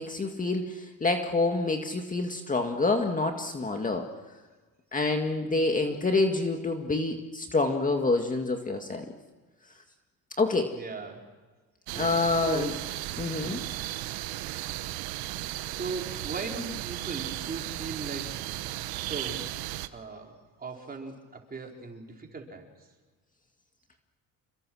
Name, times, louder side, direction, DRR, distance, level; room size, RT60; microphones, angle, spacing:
voice 1, 0.0-4.1 4.9-9.1 10.4-10.7 11.9-12.7 13.2-13.6, left 3 dB, 20° left, 4 dB, 2.0 m, -27 dB
voice 2, 10.7-11.3 11.9-12.8 13.4-13.7 15.2-18.3 19.0-19.5 19.9-22.7, right 3 dB, 25° right, 1 dB, 4.7 m, -39 dB
sound 1, 11.9-19.9, right 16 dB, 85° right, 1.1 m, -35 dB
28.5 x 22.5 x 6.3 m, 1.3 s
cardioid pair, 110°, 36 cm